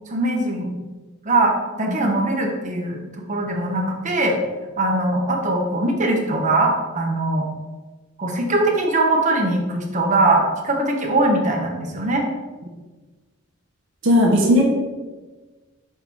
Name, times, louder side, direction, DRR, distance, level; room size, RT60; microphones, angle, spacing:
voice 1, 0.1-0.7 1.2-3.0 3.3-4.4 4.8-7.5 8.2-12.2, right 2 dB, 35° right, 1 dB, 1.0 m, -21 dB
voice 2, 14.0-14.6, left 1 dB, 60° right, -1 dB, 1.0 m, -16 dB
5.5 x 4.0 x 4.5 m, 1.3 s
head